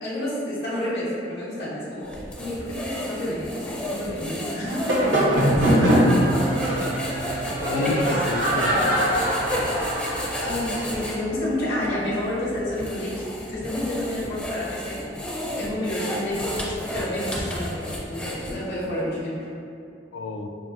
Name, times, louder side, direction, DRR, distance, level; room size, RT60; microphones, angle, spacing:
voice 1, 0.0-5.0 5.6-5.7 7.7-8.1 8.5-9.0 10.3-15.0 15.4-19.5, left 1 dB, 60° left, -8 dB, 0.8 m, -30 dB
sound 1, 2.0-11.2 11.8-11.9 12.6-18.8, equal, 5° left, 0.4 m, -32 dB
sound 2, 4.7-11.0, equal, 90° right, 1.0 m, -23 dB
sound 3, 5.5-14.9, equal, 65° right, 0.7 m, -35 dB
voice 2, 5.9-6.5 7.7-9.0 15.9-16.1 20.1-20.5, left 2 dB, 90° left, 4 dB, 0.3 m, -31 dB
5.5 x 2.1 x 2.7 m, 2.5 s
head